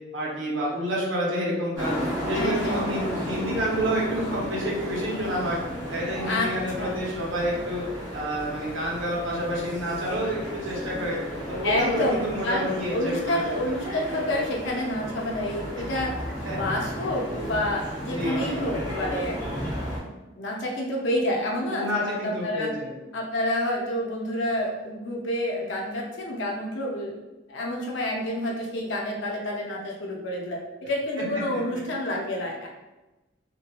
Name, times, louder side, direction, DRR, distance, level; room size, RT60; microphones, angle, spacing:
voice 1, 0.1-2.0 2.3-5.6 5.9-7.8 8.1-11.2 11.5-13.7 16.4-16.6 18.1-18.7 21.7-22.9 31.5-31.6, equal, 85° right, -4 dB, 0.8 m, -29 dB
sound 1, 1.7-20.0, equal, 20° right, 0.8 m, -33 dB
voice 2, 2.3-3.2 6.2-6.5 6.8-7.0 11.6-16.1 16.5-19.4 20.0-22.7 23.1-27.2 27.5-32.7, left 1 dB, 70° left, -1 dB, 0.5 m, -29 dB
2.9 x 2.1 x 2.3 m, 1.1 s
head